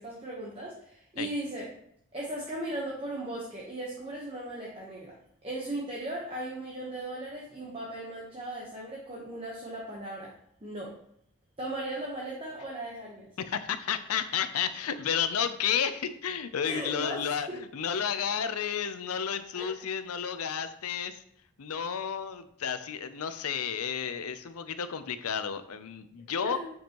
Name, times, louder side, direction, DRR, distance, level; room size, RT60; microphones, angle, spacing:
voice 1, 0.0-1.7 2.1-5.1 5.4-10.3 10.6-10.9 11.6-13.3 16.6-17.6 19.5-19.9 23.8-23.9 26.4-26.7, right 1 dB, 25° right, -4 dB, 1.0 m, -37 dB
voice 2, 13.4-21.2 21.6-26.6, left 7 dB, 85° left, 11 dB, 0.6 m, -32 dB
7.7 x 5.3 x 3.0 m, 0.69 s
head